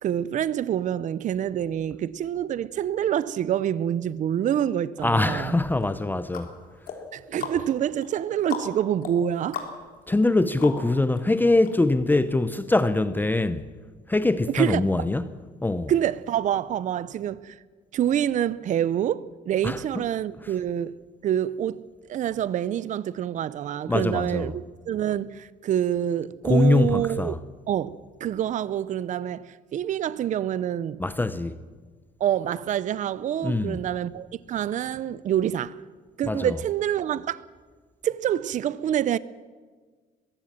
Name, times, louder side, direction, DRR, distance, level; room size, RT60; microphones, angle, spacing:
voice 1, 0.0-5.5 7.1-9.6 14.5-14.9 15.9-17.6 17.9-20.9 21.2-21.8 22.1-27.4 27.7-31.0 32.2-35.8 36.2-37.4 38.0-39.2, right 10 dB, 50° right, 0.6 m, -26 dB
voice 2, 5.0-6.5 10.1-13.7 14.1-15.2 15.6-15.9 19.6-20.0 23.9-24.5 26.4-27.4 31.0-31.6 33.4-33.8 36.2-36.6, left 2 dB, 10° left, 0.7 m, -23 dB
sound 1, 5.8-11.2 11.6-11.7, left 6 dB, 55° left, 3.6 m, -38 dB
22.5 x 15.5 x 7.4 m
cardioid pair, 110°, 17 cm